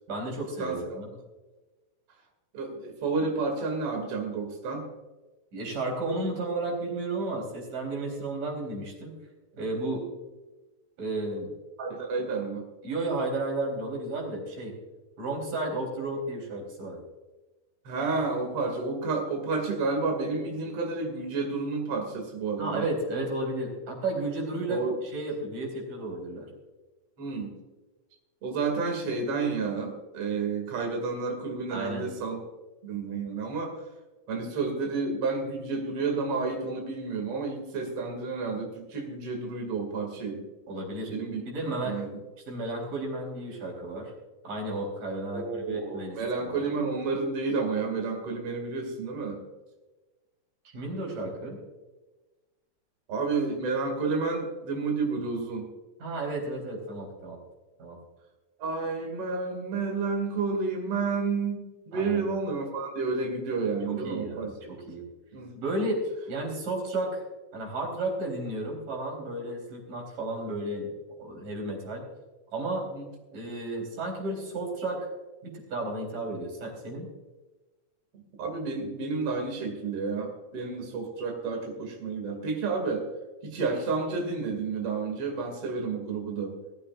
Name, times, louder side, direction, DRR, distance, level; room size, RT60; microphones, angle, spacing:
voice 1, 0.1-1.1 5.5-9.1 9.6-10.0 11.0-11.5 12.8-14.7 15.2-17.0 22.6-26.5 31.7-32.1 40.7-41.1 41.5-42.0 42.5-44.1 44.4-46.5 50.7-51.6 56.0-57.4 57.8-58.0 61.9-62.2 63.9-65.0 65.6-67.2 67.5-70.9 71.2-72.0 72.5-72.9 73.3-75.0 75.4-77.1, right 2 dB, 85° right, 0 dB, 5.5 m, -33 dB
voice 2, 0.6-1.0 2.5-4.9 11.8-12.6 17.9-22.9 24.7-25.0 27.2-27.5 28.4-32.4 32.8-33.8 34.3-40.4 41.1-41.4 41.9-42.2 45.3-49.4 53.1-55.7 58.6-64.5 65.3-65.5 72.9-73.1 78.4-83.1 83.4-86.6, right 4 dB, 50° right, 2 dB, 3.3 m, -30 dB
21.0 x 14.5 x 2.5 m, 1.2 s
omnidirectional pair, 3.5 m